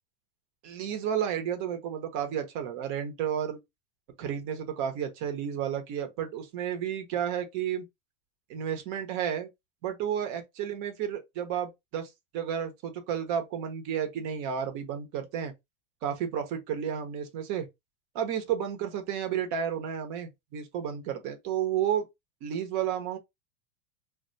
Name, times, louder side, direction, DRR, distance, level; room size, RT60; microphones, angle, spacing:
voice 1, 0.6-3.6 4.2-7.9 8.5-9.5 9.8-15.5 16.0-17.7 18.1-22.1 22.4-23.2, right 9 dB, 45° right, 0.9 m, -32 dB
2.2 x 2.2 x 3.9 m
supercardioid pair, 135°, 41 cm